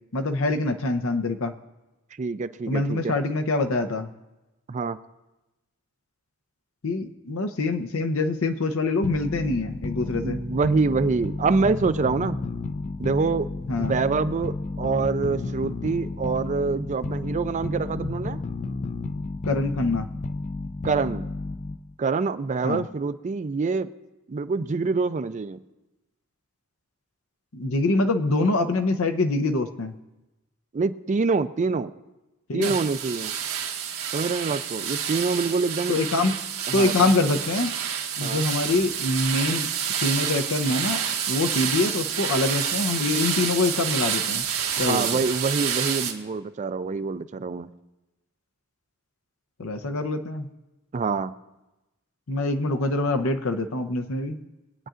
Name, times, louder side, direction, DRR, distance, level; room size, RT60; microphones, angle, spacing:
voice 1, 0.1-1.6 2.7-4.1 6.8-10.4 13.7-14.0 19.4-20.1 22.6-22.8 27.5-29.9 32.5-32.8 35.9-36.4 36.7-37.7 38.2-39.7 40.0-44.5 44.8-45.2 49.6-50.5 52.3-54.4, left 2 dB, 80° left, 7 dB, 0.8 m, -25 dB
voice 2, 2.2-3.1 4.7-5.0 10.1-12.4 13.0-13.5 13.8-18.4 20.8-21.3 22.0-23.9 24.3-25.6 30.7-31.9 32.5-33.3 34.1-36.0 36.7-37.1 38.2-38.4 44.8-47.7 50.9-51.3, right 4 dB, 35° right, 13 dB, 0.4 m, -26 dB
sound 1, 9.0-21.9, left 3 dB, 35° left, 0.4 m, -32 dB
sound 2, 32.6-46.1, right 8 dB, 90° right, 1.6 m, -28 dB
23.0 x 9.1 x 2.5 m, 1.0 s
head